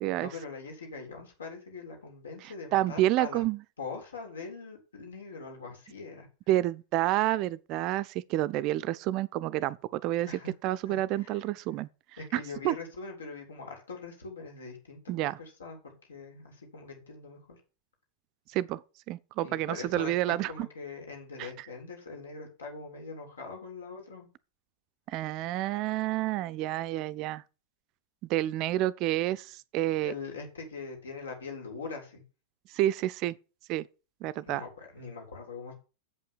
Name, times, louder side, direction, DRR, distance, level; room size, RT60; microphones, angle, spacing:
voice 1, 0.2-3.4 3.8-6.3 10.3-10.5 10.9-11.4 12.2-17.6 19.4-24.3 30.0-32.2 34.5-35.7, left 4 dB, 70° left, 3.5 m, -42 dB
voice 2, 2.4-3.6 6.5-10.3 10.6-11.9 12.3-12.7 15.1-15.4 18.5-18.8 19.1-20.7 21.4-21.7 25.1-27.4 28.3-30.1 32.7-33.3 33.7-33.9 34.2-34.6, right 15 dB, 40° right, 0.4 m, -29 dB
7.9 x 5.6 x 7.0 m
figure-of-eight pair, 90°, 0 cm